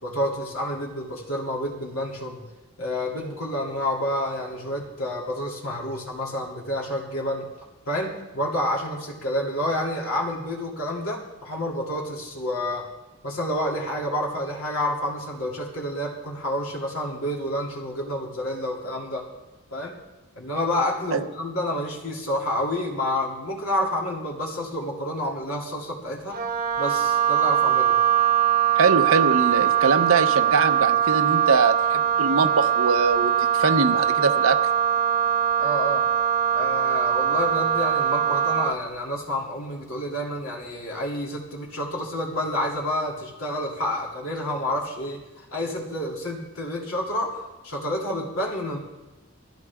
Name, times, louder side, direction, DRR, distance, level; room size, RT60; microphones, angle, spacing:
voice 1, 0.0-2.4 2.8-7.5 7.9-12.9 13.2-19.3 19.7-20.0 20.3-26.4 26.8-28.0 35.6-36.0 36.5-48.8, left 1 dB, 75° left, -2 dB, 2.7 m, -29 dB
Wind instrument woodwind instrument, 26.3-38.8, right 9 dB, 40° right, 0.9 m, -22 dB
voice 2, 28.8-34.6, right 4 dB, 70° right, 9 dB, 0.8 m, -22 dB
17.0 x 14.5 x 3.6 m, 1.1 s
head